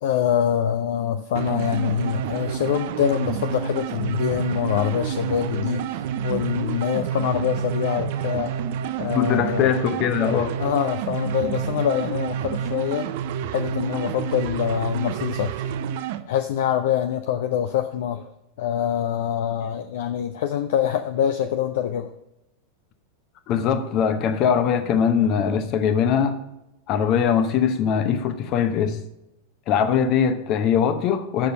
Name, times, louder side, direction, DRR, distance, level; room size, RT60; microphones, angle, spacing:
voice 1, 0.0-8.6 9.0-9.7 10.6-13.1 13.5-15.7 16.3-18.3 18.6-22.1, left 9 dB, 55° left, 0.4 m, -25 dB
sound 1, 1.3-16.2, right 8 dB, 50° right, 0.5 m, -29 dB
voice 2, 9.1-10.6 23.5-26.4 26.9-29.0 29.7-31.5, left 7 dB, 35° left, 0.9 m, -21 dB
7.6 x 6.6 x 5.4 m
figure-of-eight pair, 90°, 0 cm